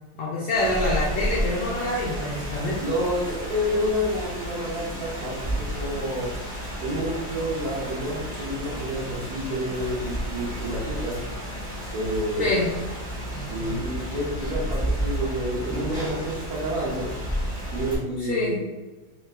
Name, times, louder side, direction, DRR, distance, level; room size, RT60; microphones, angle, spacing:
voice 1, 0.2-2.8 12.4-12.7 18.2-18.6, left 1 dB, 75° left, -5 dB, 1.0 m, -26 dB
Rain, 0.5-18.0, equal, 30° left, 0.4 m, -32 dB
voice 2, 2.8-6.3 6.8-11.2 11.9-12.6 13.5-17.1 17.7-18.6, equal, 75° right, -7 dB, 0.8 m, -29 dB
3.6 x 2.3 x 2.3 m, 1.2 s
omnidirectional pair, 2.4 m